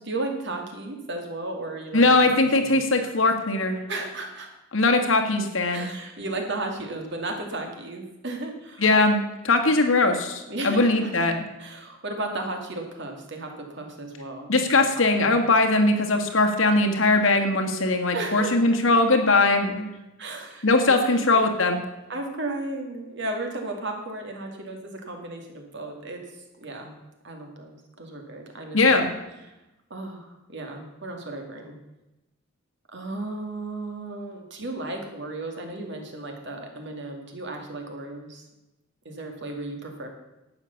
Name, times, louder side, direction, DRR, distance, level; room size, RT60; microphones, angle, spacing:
voice 1, 0.0-2.3 2.6-2.8 3.9-4.5 5.7-8.8 9.6-9.7 10.5-11.1 11.6-14.6 15.2-15.4 18.1-18.8 20.2-21.4 22.1-26.2 26.6-26.9 27.2-29.0 29.9-31.8 32.9-38.4 39.0-40.1, right 2 dB, 60° right, 3 dB, 2.4 m, -34 dB
voice 2, 1.9-3.8 4.7-5.9 8.8-11.3 14.5-19.9 20.6-21.8 28.7-29.1, left 2 dB, 70° left, 4 dB, 1.8 m, -20 dB
12.0 x 8.5 x 7.1 m, 0.99 s
head